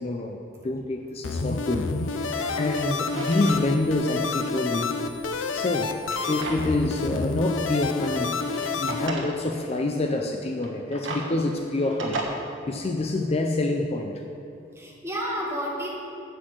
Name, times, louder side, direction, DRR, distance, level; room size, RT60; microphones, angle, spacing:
voice 1, 0.0-5.0 5.5-8.4 8.8-12.2 12.7-14.2, left 2 dB, 30° left, 4 dB, 0.5 m, -27 dB
sound 1, 1.2-9.1, left 4 dB, 85° left, 0.6 m, -29 dB
Drawer open or close, 1.6-1.7 2.2-3.7 4.0-4.1 5.2-6.9 7.3-7.4 8.2-9.3 10.5-12.2, right 3 dB, 75° right, 1.4 m, -36 dB
voice 2, 2.2-2.7 14.7-15.9, equal, 15° right, -3 dB, 1.7 m, -32 dB
8.0 x 6.2 x 7.6 m, 3.0 s
head